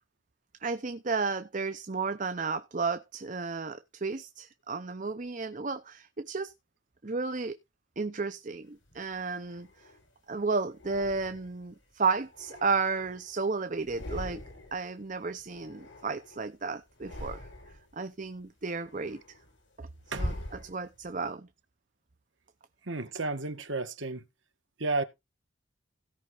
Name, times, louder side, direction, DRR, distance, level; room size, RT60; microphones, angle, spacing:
voice 1, 0.6-6.5 7.0-7.6 8.0-9.9 10.3-14.4 14.7-19.4 19.8-19.9 20.2-20.3 20.6-21.5, right 4 dB, 40° right, 0.7 m, -33 dB
sound 1, 8.9-10.1 10.7-11.7 12.2-13.4 13.7-14.9 15.1-16.5 16.9-17.9 18.4-21.1, left 1 dB, 65° left, 5.9 m, -43 dB
voice 2, 22.9-24.2 24.8-25.0, right 3 dB, 70° right, 1.9 m, -32 dB
16.5 x 5.6 x 5.0 m
head